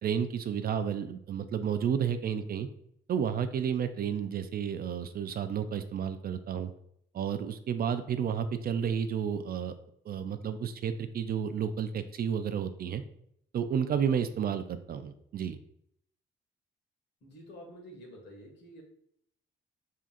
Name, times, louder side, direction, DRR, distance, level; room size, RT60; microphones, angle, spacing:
voice 1, 0.0-2.7 3.1-6.7 7.1-9.7 10.0-13.0 13.5-15.6, right 8 dB, 50° right, 10 dB, 0.4 m, -31 dB
voice 2, 17.2-18.8, equal, 60° left, 0 dB, 1.7 m, -49 dB
5.6 x 3.7 x 2.5 m, 0.71 s
cardioid pair, 90°, 20 cm